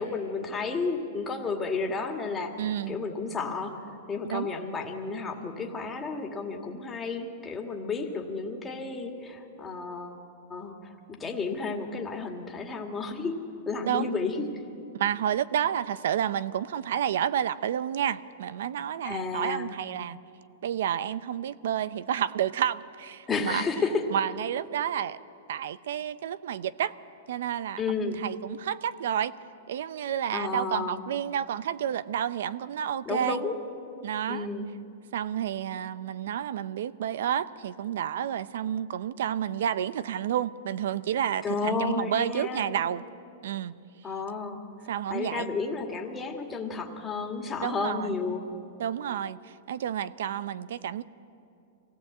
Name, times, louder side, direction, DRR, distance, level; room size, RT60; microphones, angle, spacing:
voice 1, 0.0-10.2 10.5-13.4 13.7-14.4 19.0-19.8 23.3-24.0 27.8-28.2 30.3-31.0 33.1-33.6 34.3-34.7 41.4-42.7 44.0-44.6 45.1-48.4, left 4 dB, 15° left, 2 dB, 2.1 m, -32 dB
voice 2, 2.6-3.0 4.2-4.6 13.8-14.2 14.9-20.2 20.6-23.6 24.1-25.2 25.5-26.9 27.3-29.3 29.7-33.4 34.0-34.5 35.1-43.0 43.4-43.7 44.9-45.6 47.6-48.1 48.8-51.0, right 10 dB, 75° right, 16 dB, 0.7 m, -30 dB
25.0 x 17.5 x 8.1 m, 2.6 s
supercardioid pair, 150°, 0 cm